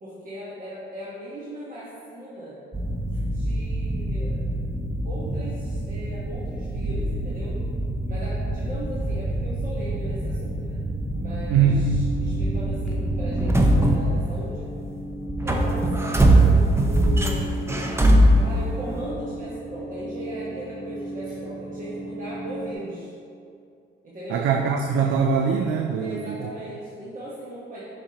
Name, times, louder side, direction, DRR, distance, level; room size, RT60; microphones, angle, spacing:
voice 1, 0.0-2.6 3.2-4.4 5.0-7.6 8.1-10.8 11.2-14.7 15.4-17.6 18.4-23.1 24.0-24.5 26.0-27.9, right 1 dB, 40° right, -8 dB, 1.2 m, -37 dB
Old Lift, 2.7-14.8 15.2-19.1, right 1 dB, 15° right, 0.6 m, -23 dB
sound 1, 11.1-22.7, right 1 dB, 75° left, 0.9 m, -36 dB
voice 2, 11.5-11.9 24.3-26.4, right 6 dB, 80° right, 3 dB, 0.4 m, -22 dB
7.0 x 5.1 x 2.9 m, 2.4 s
cardioid pair, 90°, 20 cm